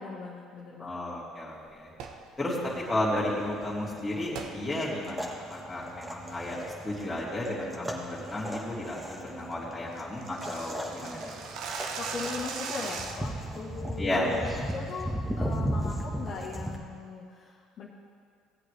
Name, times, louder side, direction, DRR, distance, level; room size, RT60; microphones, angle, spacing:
voice 1, 0.0-1.0 12.0-15.1 15.4-17.9, left 4 dB, 55° left, -4 dB, 1.4 m, -39 dB
voice 2, 0.8-1.9 2.4-2.6 2.9-6.6 6.8-11.4 14.0-14.3, left 1 dB, 15° left, -8 dB, 2.8 m, -33 dB
sound 1, 1.9-2.2 4.3-4.5 5.0-5.1 5.7-5.9 6.3-6.6 7.0-7.3 7.6-7.7 8.1-8.3 8.7-8.8 9.1-9.2 9.4-9.5 9.8-13.4, right 5 dB, 65° right, 1.0 m, -38 dB
sound 2, 2.6-16.8, equal, 10° right, 1.7 m, -37 dB
17.0 x 8.4 x 3.4 m, 2.2 s
hypercardioid pair, 65°, 0 cm